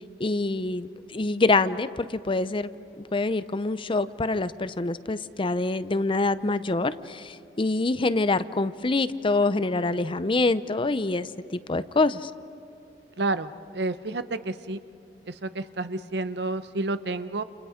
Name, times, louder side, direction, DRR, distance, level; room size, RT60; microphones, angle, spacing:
voice 1, 0.2-2.7 3.1-12.3, left 3 dB, 30° left, 14 dB, 0.6 m, -25 dB
voice 2, 13.2-14.8 15.3-17.4, right 2 dB, 70° right, 12 dB, 0.9 m, -30 dB
30.0 x 29.0 x 5.1 m, 2.8 s
head